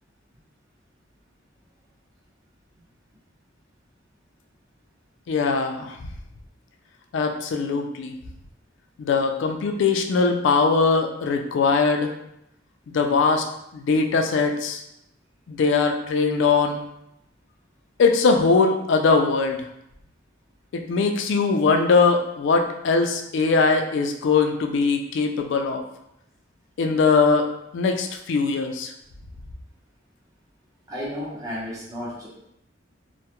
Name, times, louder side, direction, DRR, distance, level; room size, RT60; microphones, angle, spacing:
voice 1, 5.3-6.0 7.1-8.1 9.0-12.1 12.9-13.5 13.7-14.8 15.5-16.8 18.0-19.7 20.7-25.8 26.8-27.5 27.7-28.9, left 4 dB, 65° left, 4 dB, 0.3 m, -21 dB
voice 2, 30.9-32.3, equal, 20° right, -6 dB, 0.7 m, -32 dB
2.3 x 2.1 x 2.8 m, 0.81 s
head